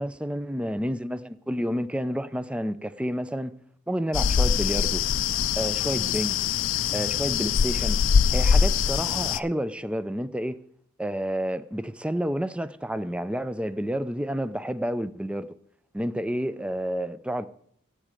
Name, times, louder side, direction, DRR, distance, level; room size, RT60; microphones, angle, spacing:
voice 1, 0.0-3.5 3.9-5.0 5.6-6.4 6.9-8.0 8.3-10.6 11.0-15.5 15.9-17.5, equal, 5° right, 0.4 m, -30 dB
sound 1, 4.1-9.4, left 6 dB, 65° left, 0.4 m, -23 dB
15.0 x 5.0 x 8.9 m
head